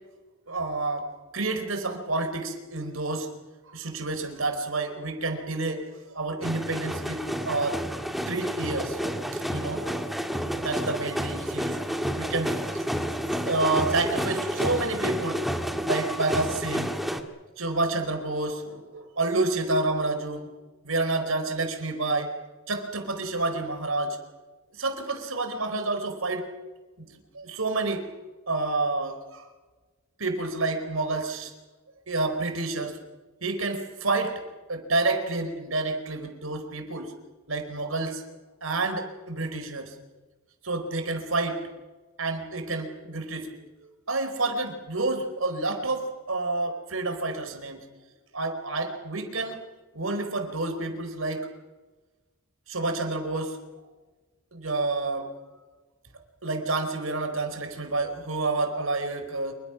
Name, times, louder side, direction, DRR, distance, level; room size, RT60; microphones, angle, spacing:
voice 1, 0.5-3.3 3.7-7.9 8.3-10.0 10.5-12.9 13.4-15.4 15.8-16.9 17.6-20.5 20.8-22.3 22.7-24.2 24.7-26.5 27.0-27.1 27.3-28.0 28.5-29.5 30.2-31.5 32.1-33.0 33.4-34.4 34.7-37.1 37.5-39.9 40.6-41.6 42.2-47.8 48.3-49.6 49.9-51.5 52.7-53.6 54.5-55.3 56.4-59.5, right 2 dB, 75° right, 7 dB, 4.5 m, -29 dB
sound 1, 6.4-17.2, equal, ahead, 2.1 m, -30 dB
28.0 x 24.5 x 6.0 m, 1.2 s
head